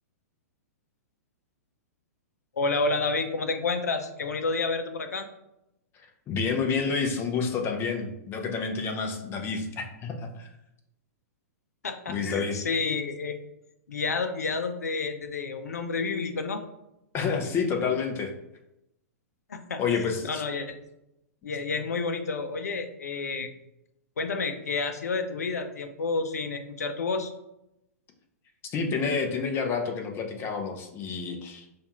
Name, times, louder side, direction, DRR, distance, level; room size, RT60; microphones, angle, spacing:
voice 1, 2.6-5.3 11.8-13.4 13.9-16.6 19.5-19.8 20.3-20.8 21.4-23.5 24.2-27.3, left 4 dB, 80° left, 7 dB, 0.5 m, -30 dB
voice 2, 5.9-10.5 12.1-12.6 17.1-18.3 19.8-20.4 28.7-31.7, left 5 dB, 30° left, 3 dB, 0.7 m, -29 dB
5.2 x 2.4 x 3.0 m, 0.86 s
figure-of-eight pair, 110°, 9 cm